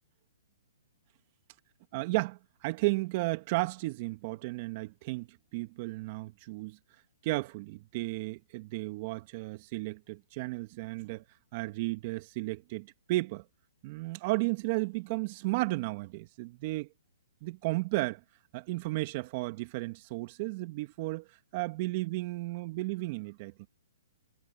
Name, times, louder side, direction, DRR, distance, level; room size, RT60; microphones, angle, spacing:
voice 1, 1.9-6.8 7.2-11.2 11.5-13.4 13.8-16.9 17.4-18.2 18.5-21.3 21.5-23.7, right 22 dB, 40° right, 2.1 m, -33 dB
hypercardioid pair, 140°, 0 cm